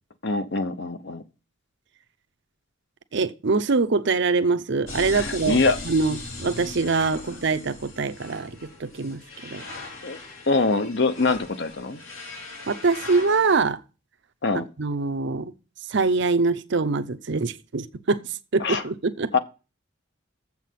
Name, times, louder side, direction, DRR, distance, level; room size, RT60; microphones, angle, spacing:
voice 1, 0.2-1.2 5.1-5.8 10.0-10.2 10.5-12.0 14.4-14.7 18.6-18.8 19.3-19.4, left 3 dB, 60° left, 0.9 m, -24 dB
voice 2, 3.1-5.6 5.9-9.6 12.7-13.8 14.5-15.5 15.9-18.2 18.5-19.3, right 4 dB, 60° right, 0.6 m, -24 dB
sound 1, 4.9-13.6, left 2 dB, 80° left, 2.7 m, -39 dB
7.6 x 5.9 x 7.4 m
head